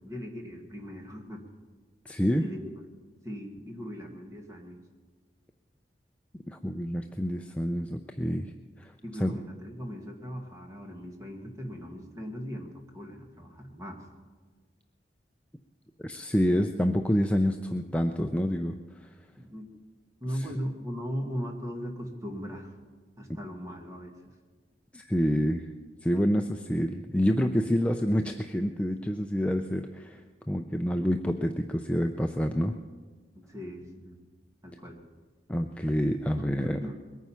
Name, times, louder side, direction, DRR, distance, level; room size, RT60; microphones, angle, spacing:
voice 1, 0.0-1.4 2.4-2.7 3.2-4.8 9.0-14.0 19.4-19.7 20.2-22.8 23.2-24.1 33.3-34.2 34.6-35.0 36.4-37.0, equal, 20° right, 2 dB, 1.8 m, -38 dB
voice 2, 2.1-2.4 6.5-8.5 8.8-8.9 9.2-9.4 16.0-19.1 20.3-20.5 24.9-25.7 26.0-30.2 30.5-32.8 35.5-36.8, equal, 5° left, 4 dB, 0.5 m, -27 dB
21.5 x 9.4 x 5.7 m, 1.4 s
head